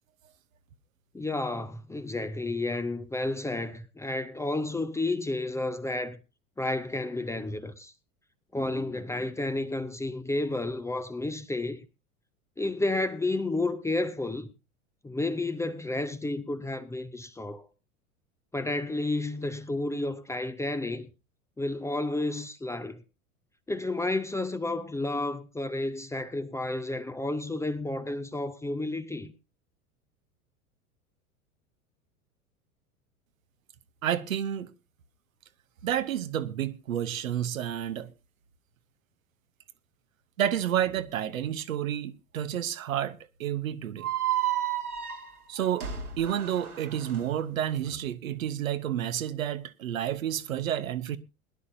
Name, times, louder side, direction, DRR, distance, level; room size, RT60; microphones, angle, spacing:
voice 1, 1.1-6.2 6.6-7.9 8.5-11.8 12.6-14.5 15.0-17.7 18.5-21.1 21.6-23.0 23.7-29.3, left 2 dB, 5° left, 0.7 m, -31 dB
voice 2, 34.0-34.7 35.8-38.1 40.4-44.1 45.5-45.9 46.2-51.2, right 10 dB, 65° right, 1.1 m, -30 dB
sound 1, 44.0-47.2, right 11 dB, 80° right, 2.2 m, -32 dB
21.5 x 11.0 x 2.7 m
figure-of-eight pair, 85°, 44 cm